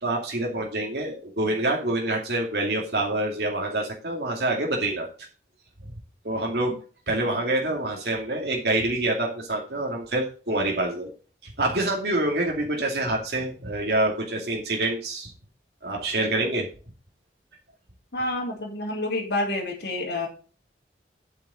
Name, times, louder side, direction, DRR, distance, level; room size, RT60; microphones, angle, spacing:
voice 1, 0.0-5.1 6.2-6.8 7.1-11.1 11.4-15.3 15.8-16.7, right 2 dB, 65° right, 0 dB, 2.4 m, -26 dB
voice 2, 18.1-20.3, left 2 dB, 80° left, -6 dB, 2.8 m, -28 dB
9.8 x 7.7 x 4.3 m, 0.37 s
head